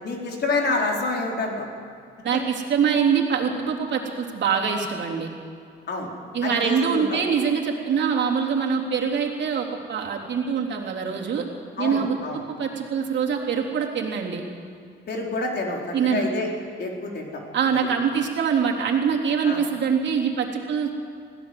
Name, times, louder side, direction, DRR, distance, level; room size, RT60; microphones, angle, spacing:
voice 1, 0.0-1.7 5.9-6.1 6.4-7.2 11.8-12.4 15.1-16.5 16.8-17.3 17.7-17.8 19.4-19.6, left 3 dB, 55° left, 0 dB, 4.4 m, -27 dB
voice 2, 2.2-5.3 6.3-11.5 11.8-12.2 12.5-14.4 15.9-16.3 17.5-20.9, right 6 dB, 65° right, 0 dB, 3.5 m, -24 dB
21.5 x 16.5 x 7.9 m, 2.4 s
cardioid pair, 100°, 20 cm